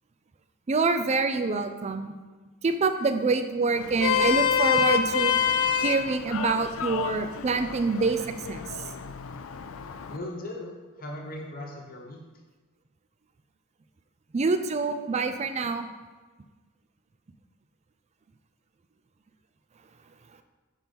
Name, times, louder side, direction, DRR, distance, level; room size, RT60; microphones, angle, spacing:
voice 1, 0.7-2.1 2.6-5.4 5.8-8.8 14.3-15.9, right 4 dB, 30° right, 9 dB, 0.4 m, -26 dB
Vehicle horn car horn honking, 3.8-10.2, left 7 dB, 60° left, 0.4 m, -27 dB
voice 2, 10.1-12.2, left 1 dB, 40° left, 0 dB, 1.1 m, -38 dB
6.0 x 4.5 x 5.2 m, 1.3 s
head